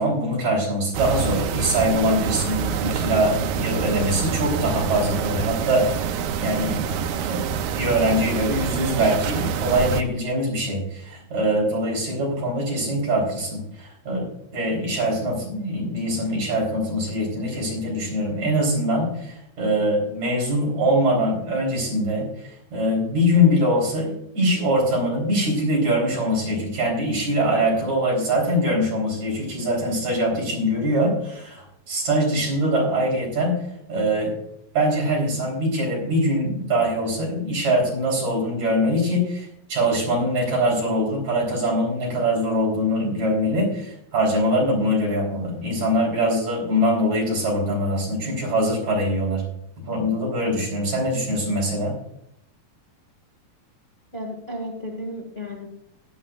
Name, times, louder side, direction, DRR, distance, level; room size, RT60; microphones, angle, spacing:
voice 1, 0.0-6.8 7.2-7.4 7.7-33.5 33.9-34.3 34.7-49.4 49.9-52.0, equal, 50° right, -2 dB, 4.9 m, -23 dB
sound 1, 0.9-10.0, right 7 dB, 75° right, 1.8 m, -26 dB
voice 2, 54.1-55.7, equal, 25° left, -1 dB, 1.3 m, -33 dB
17.0 x 11.0 x 2.4 m, 0.79 s
omnidirectional pair, 4.0 m